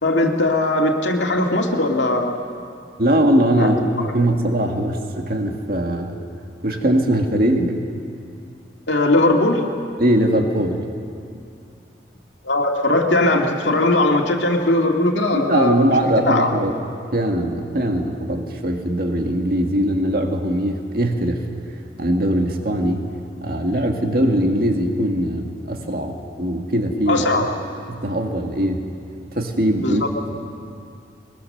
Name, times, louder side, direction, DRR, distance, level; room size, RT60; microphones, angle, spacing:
voice 1, 0.0-2.3 3.6-3.7 8.9-9.6 12.4-15.9 16.3-16.5 27.1-27.5 29.8-30.0, left 2 dB, 80° left, 1 dB, 2.2 m, -19 dB
voice 2, 3.0-6.2 6.6-7.8 10.0-10.9 15.3-16.7 17.1-21.4 22.0-23.1 23.4-26.1 26.4-27.2 27.9-28.9 29.4-30.0, right 1 dB, 50° right, 3 dB, 1.9 m, -20 dB
22.0 x 22.0 x 6.7 m, 2.4 s
head